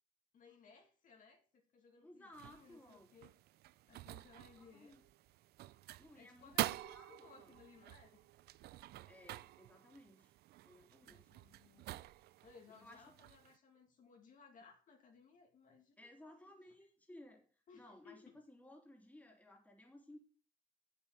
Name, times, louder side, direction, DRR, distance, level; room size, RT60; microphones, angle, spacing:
voice 1, 0.3-3.4 3.9-5.0 6.1-8.2 11.0-11.9 12.4-16.3 17.7-18.4, left 5 dB, 50° left, 2 dB, 2.4 m, -62 dB
voice 2, 2.0-3.1 4.6-5.0 6.0-6.6 6.9-7.6 9.1-10.3 10.6-11.3 12.7-13.0 16.0-20.2, left 1 dB, 10° left, 2 dB, 2.9 m, -59 dB
sound 1, 2.3-13.6, right 16 dB, 70° right, 0.5 m, -47 dB
7.9 x 7.3 x 6.6 m, 0.39 s
cardioid pair, 110°, 17 cm